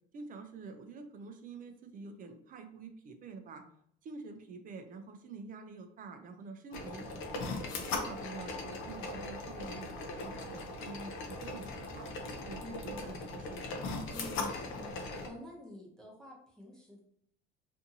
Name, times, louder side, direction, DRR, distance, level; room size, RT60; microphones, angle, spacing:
voice 1, 0.1-3.6 4.0-7.6 7.9-12.1 12.4-14.1, right 4 dB, 40° right, 7 dB, 0.4 m, -47 dB
sound 1, 6.7-15.3, left 3 dB, 70° left, 0.6 m, -39 dB
voice 2, 12.6-13.0 14.1-17.0, left 1 dB, 5° left, -5 dB, 0.7 m, -49 dB
2.6 x 2.5 x 2.6 m, 0.67 s
cardioid pair, 130°, 21 cm